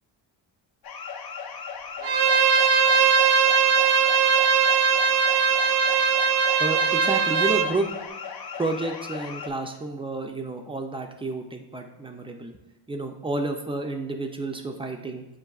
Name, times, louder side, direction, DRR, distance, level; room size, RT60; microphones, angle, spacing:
sound 1, 0.8-9.5, left 6 dB, 50° left, 0.6 m, -37 dB
Bowed string instrument, 2.0-7.7, right 6 dB, 80° right, 0.6 m, -20 dB
voice 1, 6.6-7.9 8.5-12.5 12.9-15.2, right 2 dB, 15° right, 4 dB, 0.3 m, -30 dB
7.4 x 2.6 x 2.3 m, 1.0 s
cardioid pair, 95°, 46 cm